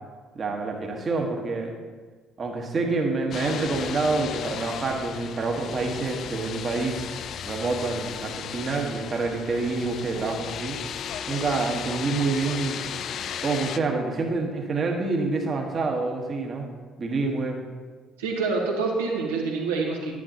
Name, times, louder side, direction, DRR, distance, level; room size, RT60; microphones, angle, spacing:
voice 1, 0.3-1.8 2.4-7.0 7.4-10.8 11.3-12.8 13.4-16.7 17.0-17.6, right 3 dB, 40° right, 2 dB, 1.5 m, -27 dB
sound 1, 3.3-13.8, left 8 dB, 50° left, 0.4 m, -35 dB
voice 2, 18.2-20.1, right 4 dB, 75° right, -1 dB, 1.5 m, -26 dB
10.0 x 10.0 x 2.9 m, 1.4 s
figure-of-eight pair, 50°, 0 cm